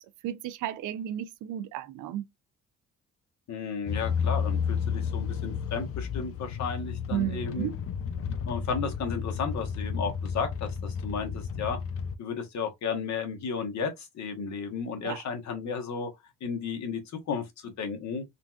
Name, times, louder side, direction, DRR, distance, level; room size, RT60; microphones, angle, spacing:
voice 1, 0.2-2.3 7.1-7.7 15.0-15.2, right 11 dB, 85° right, 0.5 m, -33 dB
voice 2, 3.5-7.7 8.5-11.8 12.2-16.1 16.4-18.2, left 5 dB, 65° left, 1.1 m, -33 dB
sound 1, 3.9-12.1, left 6 dB, 50° left, 0.4 m, -32 dB
3.8 x 2.3 x 2.3 m
cardioid pair, 90°, 30 cm